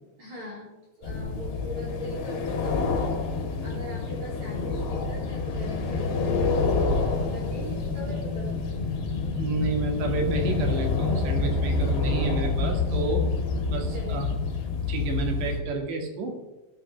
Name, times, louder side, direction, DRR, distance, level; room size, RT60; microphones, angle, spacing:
voice 1, 0.2-0.7 1.0-3.1 3.6-8.7 13.9-14.4, left 1 dB, 40° right, -5 dB, 3.7 m, -40 dB
sound 1, 1.0-15.6, left 4 dB, 70° left, 4.3 m, -27 dB
voice 2, 9.4-13.3 13.7-14.3 14.9-16.4, right 3 dB, 65° right, 3 dB, 4.1 m, -30 dB
17.0 x 11.0 x 3.3 m, 1.1 s
omnidirectional pair, 5.5 m